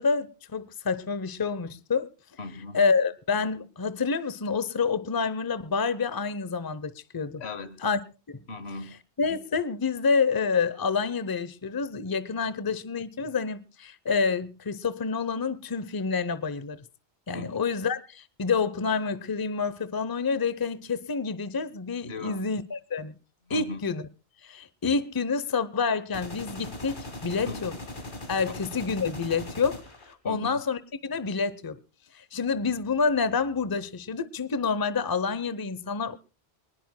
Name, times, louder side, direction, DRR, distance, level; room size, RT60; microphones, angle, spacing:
voice 1, 0.0-2.1 2.7-7.4 7.8-8.0 8.3-8.4 9.2-16.8 17.3-23.1 23.5-24.0 24.4-27.7 28.3-29.8 30.2-31.8 32.2-36.2, left 5 dB, 25° left, 0.7 m, -28 dB
voice 2, 2.4-2.8 7.4-7.9 8.5-8.9 17.3-17.5 22.0-22.5 23.5-23.8 27.5-27.6 30.2-30.6, left 3 dB, 80° left, 1.6 m, -38 dB
sound 1, 26.1-30.1, left 1 dB, 50° left, 2.3 m, -39 dB
23.5 x 20.0 x 2.2 m
omnidirectional pair, 1.1 m